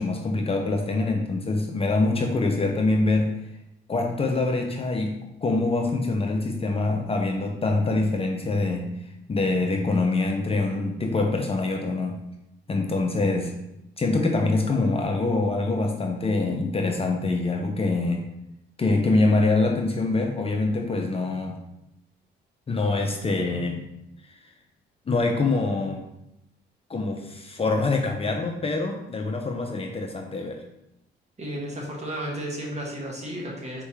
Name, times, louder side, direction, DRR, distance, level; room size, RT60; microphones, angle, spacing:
voice 1, 0.0-3.3 3.9-5.1 5.4-8.9 9.3-12.2 12.7-13.5 14.0-18.2 18.8-21.6 22.7-23.9 25.1-26.0 26.9-30.6, left 3 dB, 30° left, 3 dB, 0.6 m, -24 dB
voice 2, 31.4-33.8, right 1 dB, 35° right, -2 dB, 1.4 m, -33 dB
4.4 x 3.5 x 3.1 m, 0.83 s
cardioid pair, 90°, 20 cm